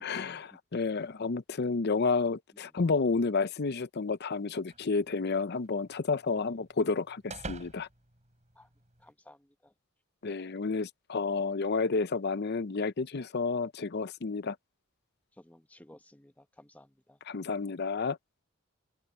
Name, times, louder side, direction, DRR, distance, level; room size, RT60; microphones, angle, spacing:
voice 1, 0.0-7.9 10.2-14.6 17.3-18.2, left 4 dB, 50° left, 0.6 m, -30 dB
sound 1, 4.7-9.1, right 3 dB, 35° right, 5.9 m, -49 dB
voice 2, 9.0-9.7 15.3-17.2, left 1 dB, 10° left, 1.0 m, -56 dB
head